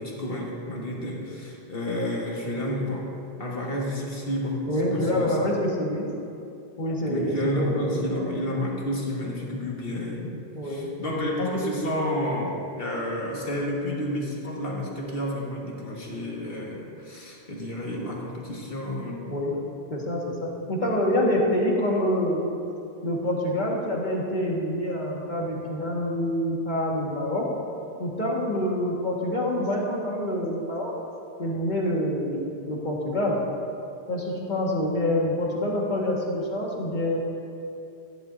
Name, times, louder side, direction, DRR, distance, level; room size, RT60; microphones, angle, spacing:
voice 1, 0.0-3.1 3.4-5.4 7.0-10.3 10.6-19.5, left 1 dB, 65° left, -2 dB, 1.9 m, -30 dB
voice 2, 4.7-6.1 6.8-8.0 10.5-10.9 19.3-19.6 19.9-22.4 23.0-27.5 28.0-30.9 31.4-33.4 34.1-37.2, left 1 dB, 45° left, -3 dB, 1.8 m, -26 dB
14.5 x 11.0 x 2.6 m, 2.6 s
omnidirectional pair, 1.1 m